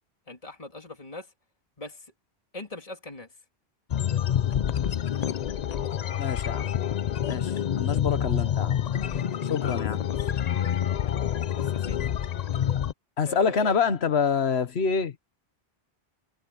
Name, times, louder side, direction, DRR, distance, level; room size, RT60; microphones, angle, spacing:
voice 1, 0.3-1.3 1.8-2.1 2.5-3.3 9.6-10.2 11.6-12.0 13.2-13.8, left 2 dB, 35° left, 3.0 m, -41 dB
sound 1, 3.9-12.9, left 9 dB, 50° left, 0.6 m, -27 dB
voice 2, 6.2-6.7 7.3-8.8 9.5-10.0 13.2-15.1, left 6 dB, 85° left, 1.4 m, -26 dB
omnidirectional pair, 1.1 m